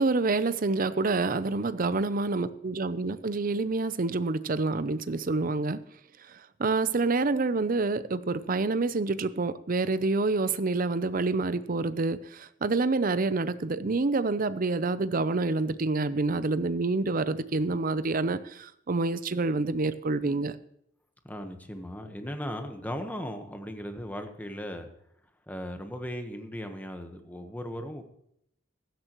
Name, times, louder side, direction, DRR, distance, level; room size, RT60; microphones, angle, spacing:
voice 1, 0.0-5.8 6.6-20.5, right 3 dB, 45° right, 14 dB, 0.6 m, -27 dB
voice 2, 21.2-24.9 25.5-28.0, equal, 10° left, 6 dB, 1.2 m, -37 dB
16.0 x 12.5 x 3.1 m, 0.74 s
head